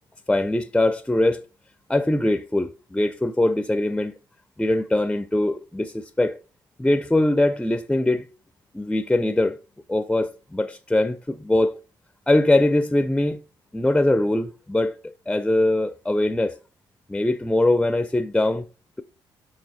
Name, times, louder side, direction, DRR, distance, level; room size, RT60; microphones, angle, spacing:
voice 1, 0.3-1.4 1.9-4.1 4.6-6.4 6.8-8.3 8.7-9.6 9.9-11.8 12.3-13.4 13.7-16.6 17.1-18.7, left 1 dB, 10° left, 0.5 m, -22 dB
6.8 x 5.6 x 4.0 m
cardioid pair, 115°, 8 cm